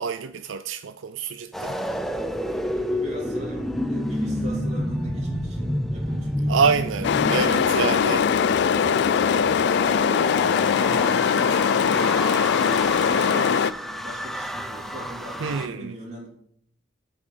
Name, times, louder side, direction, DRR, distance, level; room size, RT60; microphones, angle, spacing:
voice 1, 0.0-1.8 6.5-8.3 15.4-15.9, right 5 dB, 70° right, 0.4 m, -26 dB
sound 1, 1.5-15.7, equal, ahead, 0.6 m, -30 dB
voice 2, 2.7-6.7 7.8-9.1 9.8-16.3, right 1 dB, 35° right, 3.3 m, -40 dB
sound 2, 7.0-13.7, left 7 dB, 60° left, 0.3 m, -21 dB
7.7 x 6.1 x 6.9 m
head